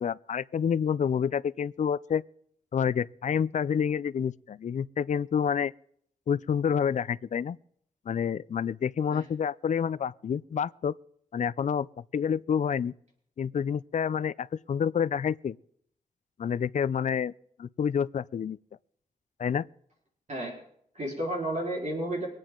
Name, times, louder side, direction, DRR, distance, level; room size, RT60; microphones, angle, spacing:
voice 1, 0.0-2.2 2.7-5.7 6.3-7.6 8.1-10.9 11.3-11.9 12.1-12.9 13.4-15.6 16.4-17.3 17.6-18.6 19.4-19.7, left 7 dB, 55° left, 0.4 m, -28 dB
voice 2, 20.3-20.6 20.9-22.3, right 1 dB, 50° right, 4.1 m, -32 dB
23.5 x 9.0 x 3.8 m
cardioid pair, 75°, 15 cm